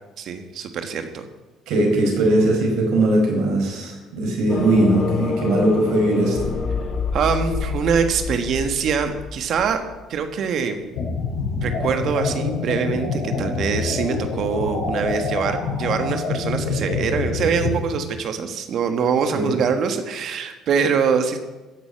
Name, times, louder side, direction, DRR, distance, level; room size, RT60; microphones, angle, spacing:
voice 1, 0.2-1.3 7.1-9.8 10.1-10.9 11.6-21.4, right 6 dB, 60° right, 7 dB, 1.4 m, -24 dB
voice 2, 1.7-6.5 19.3-19.5, right 1 dB, 75° right, 1 dB, 4.8 m, -20 dB
sound 1, 4.5-10.2, left 5 dB, 40° left, 1.7 m, -27 dB
sound 2, 11.0-17.8, left 4 dB, 70° left, 5.8 m, -26 dB
15.0 x 6.2 x 9.3 m, 1.1 s
supercardioid pair, 85°, 0 cm